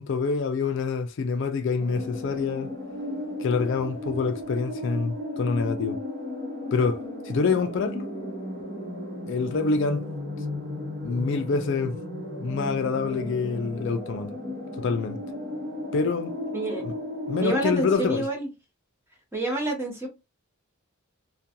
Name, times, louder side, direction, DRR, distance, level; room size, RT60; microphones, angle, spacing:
voice 1, 0.0-2.7 3.4-6.0 6.7-8.1 9.3-10.0 11.0-12.0 12.3-14.3 14.8-15.2 15.9-16.3 16.8-16.9 17.3-18.3, left 4 dB, 55° left, 0.4 m, -26 dB
sound 1, 1.8-18.0, left 1 dB, 50° right, 0.9 m, -35 dB
voice 2, 16.5-16.8 17.4-18.5 19.3-20.1, right 1 dB, 10° right, 0.8 m, -28 dB
2.4 x 2.2 x 2.8 m
head